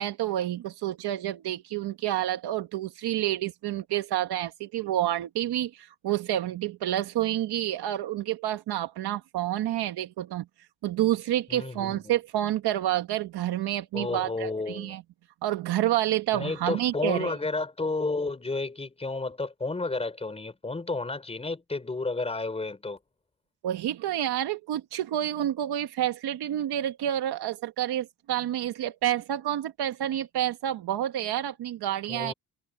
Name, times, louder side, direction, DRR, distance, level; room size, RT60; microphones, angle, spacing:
voice 1, 0.0-10.4 10.8-15.0 15.4-17.3 23.6-32.3, right 12 dB, 70° right, 1.2 m, -29 dB
voice 2, 11.5-12.0 13.9-14.9 16.3-23.0 32.1-32.3, left 3 dB, 15° left, 4.4 m, -31 dB
cardioid pair, 175°, 40 cm